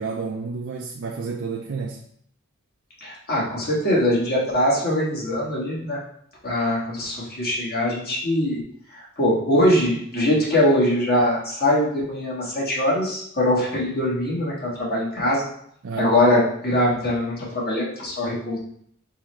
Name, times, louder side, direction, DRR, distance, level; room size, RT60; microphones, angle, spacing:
voice 1, 0.0-2.0 15.8-16.1, right 4 dB, 65° right, 0 dB, 0.5 m, -30 dB
voice 2, 3.0-6.0 6.4-8.6 9.2-15.4 16.0-18.6, left 1 dB, 50° left, -4 dB, 1.5 m, -22 dB
4.4 x 3.7 x 3.1 m, 0.66 s
head